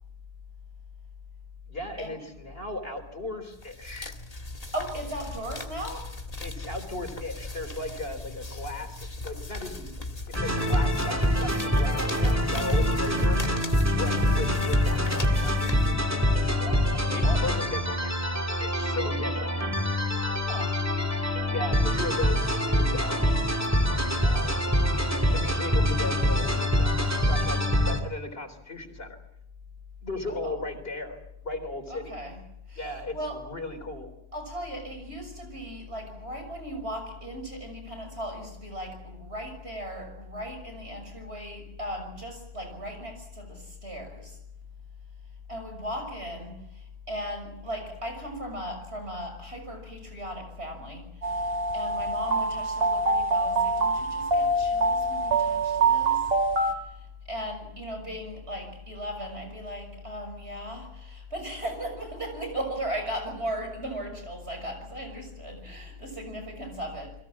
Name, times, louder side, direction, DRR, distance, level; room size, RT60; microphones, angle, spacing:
voice 1, 1.7-4.1 6.4-9.9 10.3-13.4 13.9-15.8 17.1-18.2 18.6-19.8 21.5-23.3 24.2-24.7 25.3-29.2 30.0-32.2 32.8-34.1, left 2 dB, 65° left, 6 dB, 4.1 m, -36 dB
sound 1, 3.5-16.4, left 2 dB, 35° left, 2.0 m, -39 dB
voice 2, 4.7-6.1 16.6-17.4 20.2-20.8 30.3-30.5 31.9-32.4 32.7-33.4 34.3-44.4 45.5-56.2 56.6-67.2, equal, 85° right, 5 dB, 6.7 m, -37 dB
sound 2, 10.3-28.0, left 1 dB, 15° right, 2.7 m, -25 dB
sound 3, 51.2-56.7, right 2 dB, 65° right, 2.3 m, -25 dB
29.0 x 21.5 x 7.3 m, 0.81 s
omnidirectional pair, 1.1 m